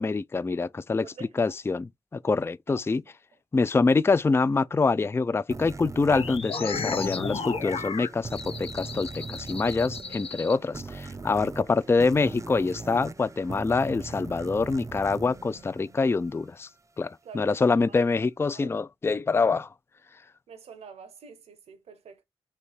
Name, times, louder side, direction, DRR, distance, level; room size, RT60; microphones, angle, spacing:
voice 1, 0.0-1.1 1.4-3.0 3.5-16.7 17.0-19.7, left 4 dB, 25° left, 0.3 m, -25 dB
voice 2, 1.0-1.6 2.7-3.1 14.6-14.7 17.2-18.1 18.5-18.8 20.5-22.2, right 6 dB, 85° right, 0.9 m, -47 dB
sound 1, 5.5-16.7, right 3 dB, 30° right, 0.6 m, -40 dB
sound 2, 6.1-10.5, left 5 dB, 70° left, 0.8 m, -34 dB
3.4 x 2.7 x 4.3 m
cardioid pair, 45°, 10 cm